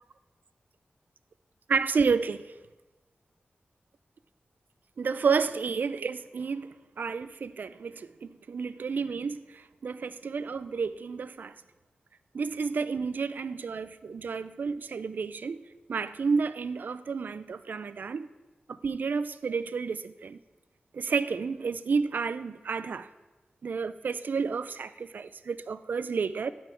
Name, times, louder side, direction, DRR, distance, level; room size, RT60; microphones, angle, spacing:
voice 1, 1.7-2.5 5.0-11.5 12.3-15.6 15.9-18.3 18.7-20.4 20.9-23.1 23.6-26.5, right 5 dB, 65° right, 0.3 m, -31 dB
12.0 x 4.2 x 4.4 m
wide cardioid pair, 125°, 3 cm